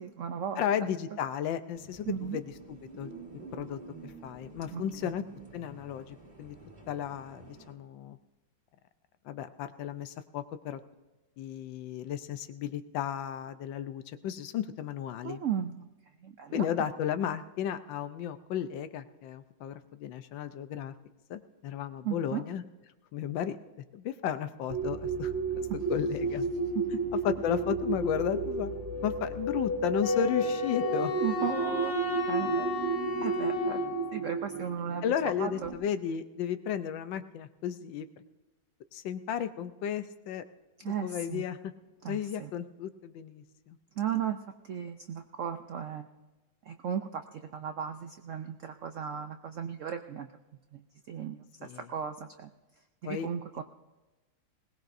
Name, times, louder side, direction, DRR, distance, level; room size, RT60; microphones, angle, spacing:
voice 1, 0.0-0.9 2.1-2.4 4.7-5.1 15.2-15.9 16.2-16.7 22.0-22.4 25.7-25.8 26.7-26.8 31.2-31.9 32.3-32.7 33.2-35.1 35.4-35.7 40.8-41.5 42.0-42.5 44.0-44.4 44.6-46.1 46.6-50.3 50.7-52.5 53.0-53.6, right 8 dB, 70° right, 7 dB, 0.7 m, -36 dB
voice 2, 0.6-3.1 3.5-5.2 5.5-6.6 6.9-8.2 9.2-10.8 11.4-15.4 16.5-20.9 21.3-22.6 23.1-23.6 23.9-25.3 25.9-26.5 27.1-28.7 29.0-31.1 35.0-38.1 38.9-40.4 40.8-41.7 42.1-43.8 51.6-51.8 53.0-53.3, left 9 dB, 85° left, 10 dB, 1.4 m, -34 dB
sound 1, 1.7-7.7, right 3 dB, 25° right, 1.9 m, -49 dB
sound 2, 24.7-35.7, right 3 dB, 45° right, 2.2 m, -32 dB
Wind instrument woodwind instrument, 30.0-34.3, left 4 dB, 20° left, 2.4 m, -35 dB
20.5 x 18.5 x 2.6 m, 1.1 s
omnidirectional pair, 2.0 m